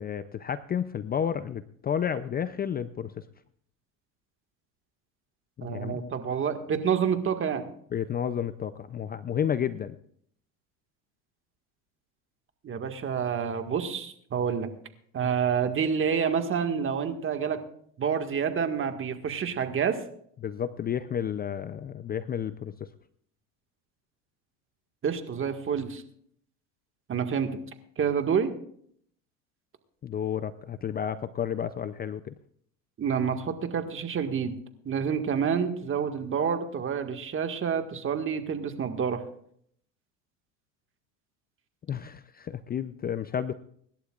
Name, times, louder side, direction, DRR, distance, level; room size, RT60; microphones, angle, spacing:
voice 1, 0.0-3.2 5.6-6.1 7.9-10.0 20.4-22.9 30.0-32.3 41.9-43.5, left 8 dB, 25° left, 13 dB, 0.5 m, -31 dB
voice 2, 5.6-7.7 12.6-14.7 15.1-17.6 18.0-20.0 25.0-26.0 27.1-27.5 28.0-28.5 33.0-34.5 34.9-39.2, right 7 dB, 30° right, 6 dB, 1.8 m, -28 dB
25.0 x 11.5 x 2.4 m, 0.65 s
supercardioid pair, 100°, 38 cm